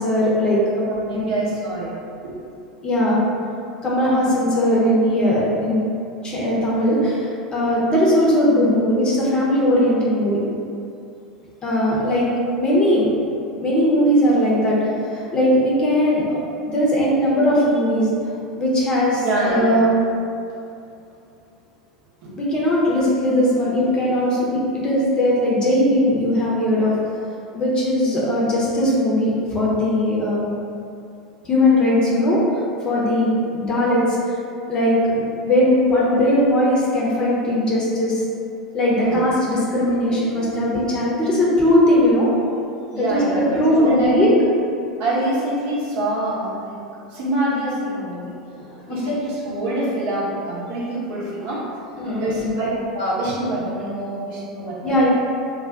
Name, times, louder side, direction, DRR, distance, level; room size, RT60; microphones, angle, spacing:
voice 1, 0.0-0.8 1.1-1.5 2.8-3.2 3.8-5.8 6.2-10.4 11.6-12.3 12.6-13.1 13.6-14.8 15.1-16.4 16.7-18.1 18.5-20.0 22.4-27.0 27.5-30.5 31.4-32.4 32.8-34.3 34.7-38.2 38.7-42.3 42.9-44.3 48.9-49.0 52.0-52.3 54.8-55.1, left 1 dB, 25° left, -6 dB, 0.7 m, -19 dB
voice 2, 0.8-1.9 2.2-2.3 19.2-19.9 22.2-22.3 39.0-39.2 42.9-44.3 45.0-46.8 47.1-48.3 48.9-51.7 52.2-55.0, right 1 dB, 50° right, -7 dB, 0.8 m, -25 dB
2.4 x 2.2 x 3.6 m, 2.6 s
figure-of-eight pair, 80°, 3 cm